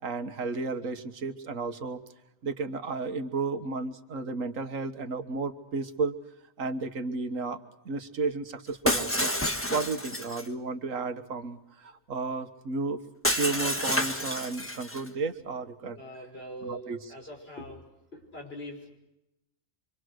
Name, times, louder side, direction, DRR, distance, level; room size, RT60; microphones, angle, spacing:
voice 1, 0.0-2.0 2.4-6.2 6.6-9.3 9.7-13.0 13.3-16.0 16.6-17.1, right 4 dB, 80° right, 8 dB, 1.8 m, -33 dB
Shatter, 8.9-10.5 13.2-15.1, equal, 10° left, 1.5 m, -29 dB
voice 2, 15.9-17.9 18.1-19.0, equal, 50° left, 1 dB, 5.9 m, -42 dB
26.0 x 25.0 x 6.4 m, 0.89 s
omnidirectional pair, 1.3 m